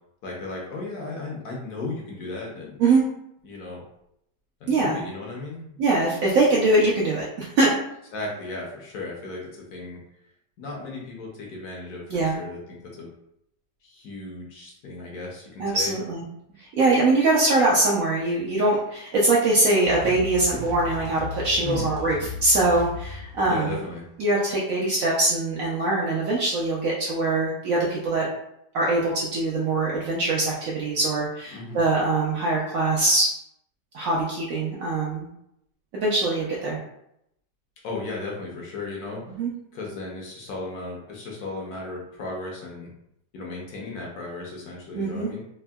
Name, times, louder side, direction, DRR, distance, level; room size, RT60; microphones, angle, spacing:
voice 1, 0.2-2.8 3.4-3.8 4.6-5.8 8.1-10.0 10.6-13.1 13.8-15.9 21.6-21.9 23.4-24.0 31.5-31.8 37.8-39.2 39.7-42.9 43.3-45.4, left 3 dB, 70° left, -2 dB, 1.1 m, -35 dB
voice 2, 4.7-5.0 5.8-7.8 12.1-12.4 15.6-16.2 16.6-23.8 24.2-28.3 28.7-33.3 33.9-35.3 35.9-36.8 39.4-39.5 44.9-45.3, right 2 dB, 70° right, -4 dB, 0.8 m, -22 dB
sound 1, 19.8-24.8, left 3 dB, 90° right, 1.3 m, -37 dB
3.5 x 2.0 x 2.2 m, 0.78 s
omnidirectional pair, 1.9 m